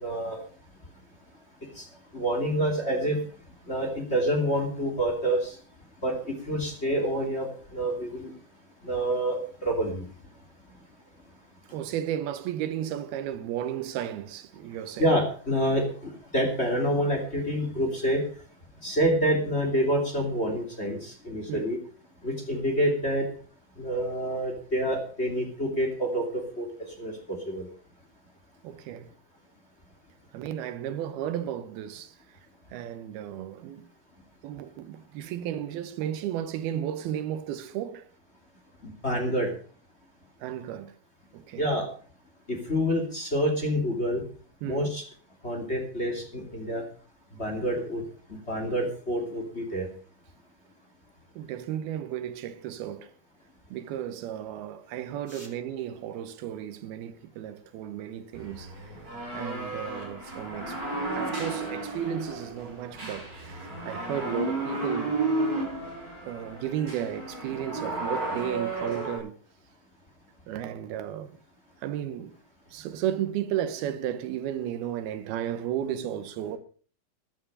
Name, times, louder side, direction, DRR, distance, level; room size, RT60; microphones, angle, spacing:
voice 1, 0.0-0.4 1.8-1.9 2.1-3.2 3.7-5.5 6.0-6.1 6.5-7.5 7.7-8.3 8.8-10.0 15.0-18.2 18.8-21.8 22.2-23.2 23.8-26.2 26.6-26.7 27.0-27.1 27.5-27.7 38.8-39.5 41.6-41.9 42.5-44.2 44.6-45.0 45.4-46.8 47.4-48.0 48.5-49.9 55.3-55.5, equal, 20° left, 2.7 m, -27 dB
voice 2, 11.7-15.0 21.5-21.7 28.6-29.1 30.3-32.2 32.7-33.8 34.4-38.1 40.4-40.9 41.3-41.6 44.6-44.9 51.4-53.1 53.7-58.7 59.3-60.8 61.1-65.5 66.3-69.3 70.5-71.4 71.8-72.4 72.7-76.6, right 10 dB, 85° right, 2.9 m, -34 dB
sound 1, 58.3-69.2, right 2 dB, 20° right, 5.5 m, -33 dB
14.0 x 11.0 x 5.5 m
omnidirectional pair, 4.3 m